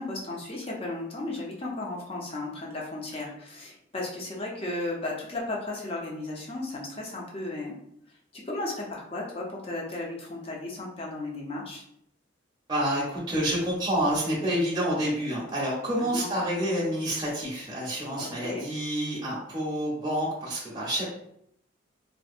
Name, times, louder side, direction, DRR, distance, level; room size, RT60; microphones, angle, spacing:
voice 1, 0.0-7.7 8.3-11.8 15.9-16.3 18.2-18.6, left 2 dB, 30° left, -2 dB, 0.5 m, -35 dB
voice 2, 12.7-21.0, equal, 20° right, -5 dB, 0.6 m, -28 dB
2.6 x 2.0 x 2.4 m, 0.73 s
head